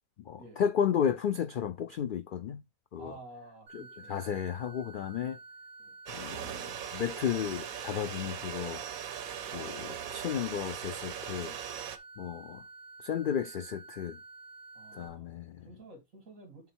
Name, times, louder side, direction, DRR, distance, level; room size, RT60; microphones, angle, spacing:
voice 1, 0.3-2.6 2.9-3.1 3.7-3.8 4.1-5.4 6.1-6.6 6.9-8.8 9.5-9.7 10.1-11.5 12.2-12.6 13.0-14.2 15.0-15.7, left 8 dB, 85° left, 0.4 m, -33 dB
voice 2, 3.0-4.4 5.8-5.9 9.5-10.0 11.4-11.6 14.7-15.3 15.6-16.7, right 2 dB, 70° right, 2.6 m, -51 dB
sound 1, 3.7-15.1, right 3 dB, 50° right, 2.8 m, -50 dB
sound 2, 6.1-12.0, right 9 dB, 85° right, 1.3 m, -40 dB
7.5 x 3.9 x 4.4 m
omnidirectional pair, 1.4 m